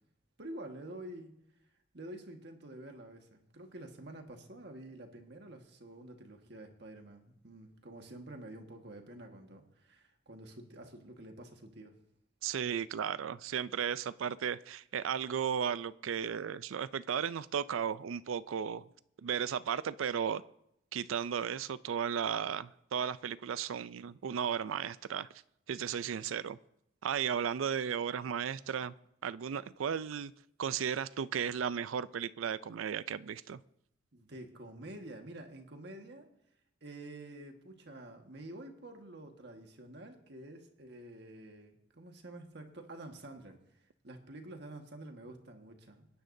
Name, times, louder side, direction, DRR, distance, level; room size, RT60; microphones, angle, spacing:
voice 1, 0.4-1.3 1.9-11.9 34.1-36.3 36.8-43.6 44.0-46.1, right 1 dB, 55° right, 1.6 m, -48 dB
voice 2, 12.4-18.8 19.2-20.4 20.9-25.3 25.7-26.6 27.0-28.9 29.2-30.3 30.6-33.6, right 8 dB, 85° right, 0.4 m, -35 dB
25.5 x 10.0 x 2.7 m
head